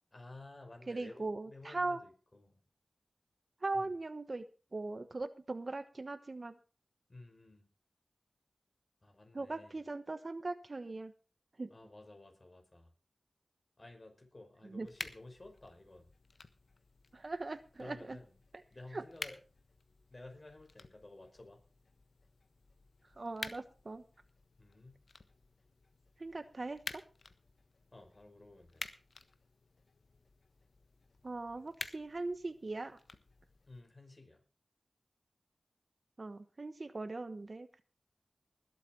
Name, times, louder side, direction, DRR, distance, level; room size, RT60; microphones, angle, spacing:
voice 1, 0.1-2.6 3.7-3.9 7.1-7.7 9.0-9.8 11.7-12.9 13.8-16.1 17.8-18.3 18.7-19.4 20.1-21.6 24.6-25.0 27.9-28.8 33.7-34.4, left 2 dB, 45° left, 4 dB, 5.5 m, -54 dB
voice 2, 0.9-2.0 3.6-4.4 4.7-6.6 9.3-11.1 11.6-11.7 14.6-14.9 17.1-18.2 18.9-19.0 23.1-24.0 26.2-27.0 31.2-33.0 36.2-37.8, right 2 dB, 55° right, 11 dB, 1.1 m, -40 dB
sound 1, 14.8-33.8, left 3 dB, 70° left, 1.2 m, -51 dB
20.0 x 8.4 x 4.6 m, 0.37 s
cardioid pair, 40°, 0 cm